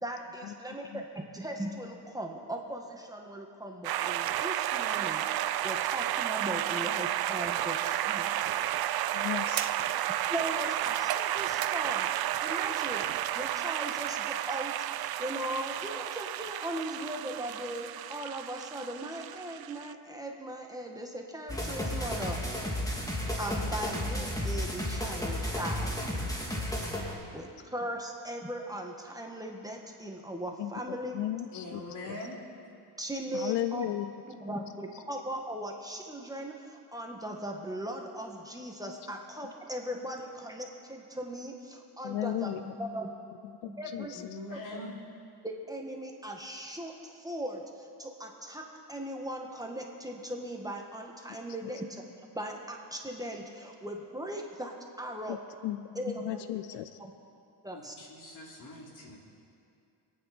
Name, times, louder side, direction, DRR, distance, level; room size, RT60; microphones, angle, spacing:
voice 1, 0.0-8.4 10.3-13.1 13.3-22.4 23.4-26.4 27.1-31.2 33.0-33.9 34.2-43.1 43.7-44.1 44.5-45.0 45.4-52.0 52.3-55.4 56.0-56.8 57.6-57.9, right 1 dB, 10° right, 1 dB, 1.7 m, -39 dB
sound 1, 3.8-19.9, right 12 dB, 60° right, 0.5 m, -32 dB
voice 2, 9.1-9.7 30.6-30.7 31.1-31.8 32.1-32.2 33.3-34.1 34.5-34.6 42.0-42.6 43.9-44.1 55.3-55.4 55.6-55.8 56.1-56.8, left 14 dB, 85° left, 11 dB, 0.6 m, -34 dB
sound 2, 21.5-27.1, left 1 dB, 10° left, 2.6 m, -33 dB
voice 3, 31.5-32.4 44.1-45.0 57.7-59.2, left 2 dB, 50° left, -2 dB, 3.4 m, -43 dB
25.5 x 9.1 x 4.4 m, 2.5 s
cardioid pair, 90°, 42 cm